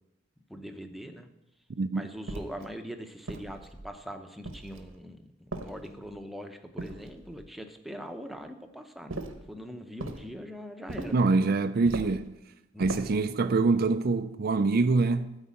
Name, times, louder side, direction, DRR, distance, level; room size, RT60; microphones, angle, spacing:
voice 1, 0.5-1.3 1.9-9.2 9.5-11.2 12.7-13.1, equal, ahead, 0.8 m, -42 dB
sound 1, 2.3-2.7 3.3-3.9 4.4-5.0 5.5-6.2 6.8-7.5 9.1-9.5 10.0-10.3 10.9-11.3 11.9-12.3 12.8-13.2, right 2 dB, 90° right, 1.2 m, -39 dB
voice 2, 11.1-12.3 12.8-15.4, right 3 dB, 50° right, 0.5 m, -25 dB
12.5 x 4.8 x 8.3 m
head